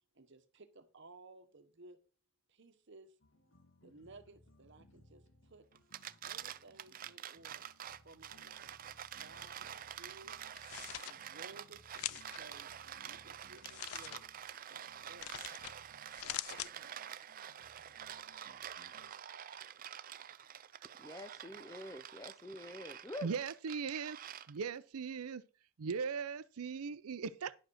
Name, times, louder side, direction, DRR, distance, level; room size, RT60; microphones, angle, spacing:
voice 1, 0.1-2.0 2.5-3.2 3.8-5.7 6.2-7.7 8.0-8.7 9.2-10.4 10.9-14.3 14.7-14.8 15.1-15.8 16.2-17.0, right 2 dB, 55° right, 1.1 m, -58 dB
sound 1, 3.2-19.1, left 1 dB, 60° left, 1.5 m, -66 dB
sound 2, 5.7-24.8, right 10 dB, 40° right, 0.4 m, -48 dB
sound 3, 10.5-11.1 11.9-12.4 13.6-14.2 15.2-15.7 16.1-16.7, left 15 dB, 85° left, 0.4 m, -43 dB
voice 2, 21.0-23.3, left 1 dB, 15° left, 0.5 m, -46 dB
voice 3, 23.2-24.2 24.5-25.4 25.8-27.6, right 5 dB, 90° right, 0.5 m, -39 dB
10.5 x 5.0 x 6.4 m
head